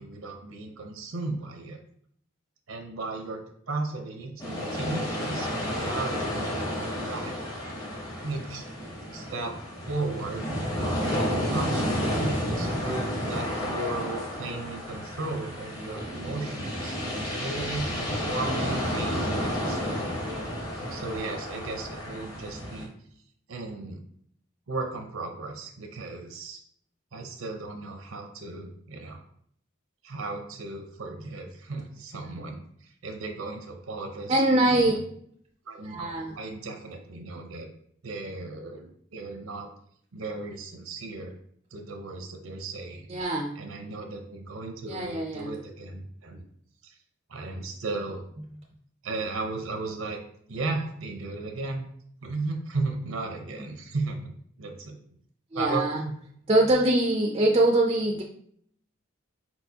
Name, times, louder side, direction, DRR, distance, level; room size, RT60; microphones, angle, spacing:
voice 1, 0.0-1.8 2.7-7.3 8.2-8.6 9.1-9.5 9.9-20.1 20.9-22.9 23.5-24.0 24.7-26.6 27.1-29.2 30.0-35.0 35.7-37.7 38.0-39.7 40.1-41.3 41.7-43.1 43.5-46.4 46.8-46.9 47.3-48.3 49.0-50.2 50.5-51.9 52.2-54.9 55.5-56.1, right 3 dB, 90° right, 4 dB, 0.7 m, -35 dB
sound 1, 4.4-22.9, equal, 20° left, 0.8 m, -31 dB
voice 2, 34.3-34.9 35.8-36.4 43.1-43.6 44.9-45.6 55.5-56.0 56.5-58.2, right 1 dB, 25° right, 0 dB, 0.4 m, -23 dB
4.5 x 4.1 x 2.7 m, 0.64 s
head